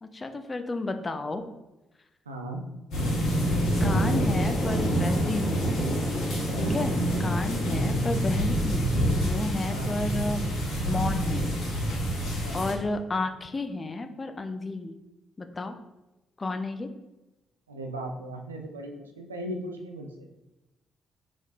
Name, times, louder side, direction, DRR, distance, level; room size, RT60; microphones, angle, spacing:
voice 1, 0.0-1.5 3.8-5.8 6.6-8.9 9.2-10.5 10.9-11.5 12.5-15.0 15.4-15.7 16.4-16.9, left 2 dB, 30° left, 7 dB, 0.4 m, -32 dB
voice 2, 2.3-2.7 4.1-4.5 6.5-6.9 7.6-8.0 9.7-10.0 12.2-12.6 17.7-20.3, right 1 dB, 85° right, 3 dB, 0.3 m, -38 dB
sound 1, 2.9-12.7, equal, 65° left, 1.5 m, -26 dB
3.7 x 3.5 x 2.6 m, 1.0 s
figure-of-eight pair, 40°, 0 cm